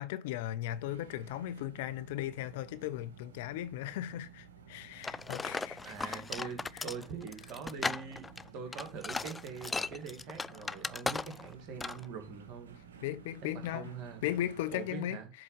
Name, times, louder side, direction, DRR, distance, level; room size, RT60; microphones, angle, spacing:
voice 1, 0.0-6.8 13.0-13.9 14.2-15.2, left 13 dB, 65° left, 0.5 m, -37 dB
sound 1, 0.7-14.9, right 6 dB, 75° right, 0.9 m, -54 dB
sound 2, 5.0-11.5 11.8-12.1, left 3 dB, 15° left, 0.3 m, -37 dB
voice 2, 5.4-12.8 13.4-14.2 14.7-15.3, right 6 dB, 50° right, 2.1 m, -44 dB
7.8 x 3.8 x 5.2 m
figure-of-eight pair, 70°, 0 cm